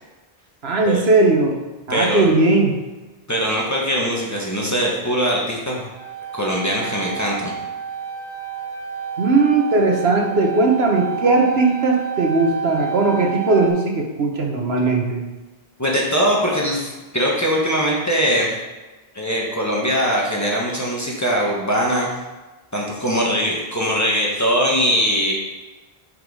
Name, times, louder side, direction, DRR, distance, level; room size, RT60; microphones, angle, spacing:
voice 1, 0.6-1.6 1.9-2.8 9.2-15.2, right 3 dB, 80° right, 1 dB, 1.4 m, -18 dB
voice 2, 1.9-2.2 3.3-5.9 6.3-7.5 15.8-18.5 19.1-22.2 22.7-25.3, equal, 15° left, -3 dB, 1.5 m, -21 dB
sound 1, 5.9-13.7, right 6 dB, 5° right, 2.3 m, -30 dB
7.9 x 4.9 x 5.0 m, 1.2 s
omnidirectional pair, 1.0 m